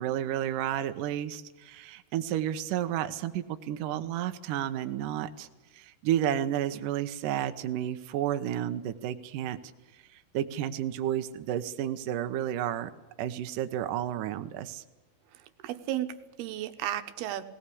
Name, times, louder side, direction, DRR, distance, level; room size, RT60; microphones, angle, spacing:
voice 1, 0.0-5.5 5.7-9.6 10.1-12.9 13.2-14.8, right 11 dB, 90° right, 8 dB, 1.8 m, -31 dB
voice 2, 15.3-17.4, right 12 dB, 70° right, 10 dB, 2.6 m, -34 dB
19.5 x 19.0 x 8.5 m, 1.1 s
omnidirectional pair, 5.2 m